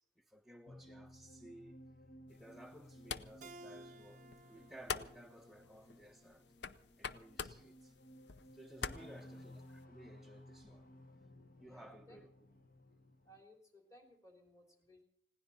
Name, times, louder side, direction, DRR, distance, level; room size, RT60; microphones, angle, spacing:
voice 1, 0.2-1.8 2.3-6.4 7.0-8.0 8.5-10.9 11.6-12.3, right 1 dB, ahead, 0.5 m, -57 dB
sound 1, 0.7-13.4, left 1 dB, 50° left, 1.2 m, -58 dB
sound 2, 2.3-9.8, left 6 dB, 70° left, 0.6 m, -48 dB
Keyboard (musical), 3.4-6.6, right 2 dB, 45° right, 0.6 m, -58 dB
voice 2, 9.0-9.4 11.6-12.2 13.2-15.0, left 1 dB, 20° left, 3.3 m, -61 dB
20.5 x 17.0 x 4.1 m
head